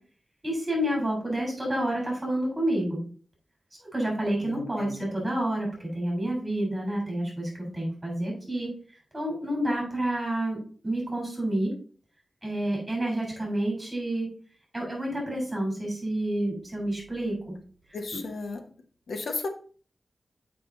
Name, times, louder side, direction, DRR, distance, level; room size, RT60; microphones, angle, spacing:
voice 1, 0.4-3.0 3.8-8.7 9.1-11.7 12.4-14.3 14.7-17.4, right 1 dB, 20° right, -1 dB, 3.6 m, -29 dB
voice 2, 4.4-5.2 17.9-18.6 19.1-19.5, left 3 dB, 90° left, 5 dB, 1.1 m, -35 dB
7.0 x 5.0 x 3.8 m, 0.42 s
wide cardioid pair, 130°, 0 cm